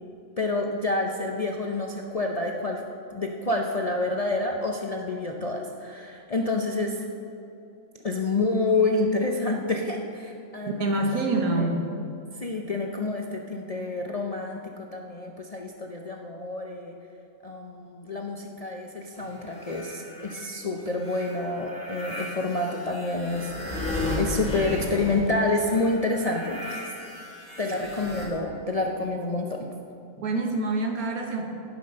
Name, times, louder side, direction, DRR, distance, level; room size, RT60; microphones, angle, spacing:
voice 1, 0.4-2.8 3.1-7.0 8.0-11.0 11.6-11.7 12.4-16.9 17.4-26.9 27.6-29.7, left 2 dB, 40° left, 1 dB, 0.5 m, -28 dB
voice 2, 10.6-11.8 30.2-31.5, right 2 dB, 85° right, 3 dB, 1.7 m, -26 dB
sound 1, 19.1-20.4 20.9-28.3, left 1 dB, 5° left, 2.7 m, -35 dB
17.0 x 6.0 x 5.4 m, 2.6 s
omnidirectional pair, 1.5 m